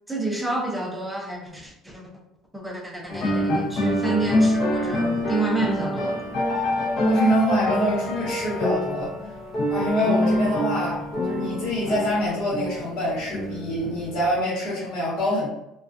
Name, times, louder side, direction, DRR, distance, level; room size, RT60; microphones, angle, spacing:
voice 1, 0.1-2.0 2.5-6.2, right 2 dB, 5° right, -1 dB, 0.5 m, -29 dB
sound 1, 3.1-14.4, left 1 dB, 40° left, 0.6 m, -25 dB
voice 2, 7.0-9.1 9.7-11.0 11.2-15.5, left 1 dB, 70° left, -8 dB, 1.1 m, -25 dB
2.3 x 2.3 x 2.4 m, 0.85 s
cardioid pair, 140°, 0 cm